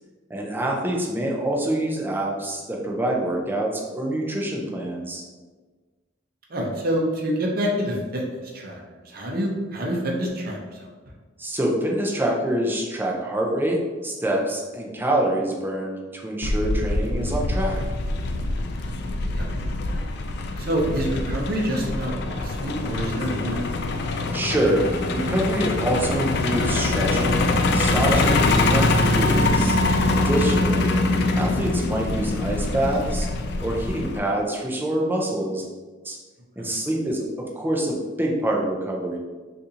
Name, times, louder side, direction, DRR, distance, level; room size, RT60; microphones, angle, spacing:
voice 1, 0.3-5.2 11.4-17.8 24.3-29.8 30.1-31.0 31.3-33.3 33.6-35.6 36.0-36.2 36.6-39.2, right 1 dB, 10° right, -1 dB, 0.4 m, -26 dB
voice 2, 6.5-8.8 9.0-10.9 18.8-19.6 20.6-23.6 36.6-36.8, equal, 50° right, -1 dB, 0.6 m, -27 dB
Truck, 16.4-34.2, left 2 dB, 55° left, 0.3 m, -23 dB
4.0 x 2.5 x 2.8 m, 1.3 s
head